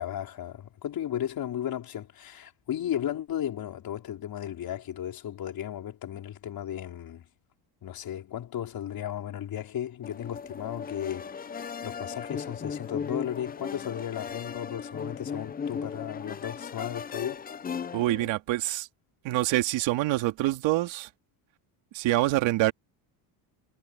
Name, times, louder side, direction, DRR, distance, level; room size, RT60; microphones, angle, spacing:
voice 1, 0.0-7.3 7.8-11.5 11.8-17.4, left 10 dB, 50° left, 5.0 m, -35 dB
sound 1, 10.0-18.3, left 6 dB, 20° left, 0.6 m, -37 dB
voice 2, 17.9-18.9 19.2-21.1 21.9-22.7, right 16 dB, 70° right, 2.5 m, -26 dB
cardioid pair, 140°, 47 cm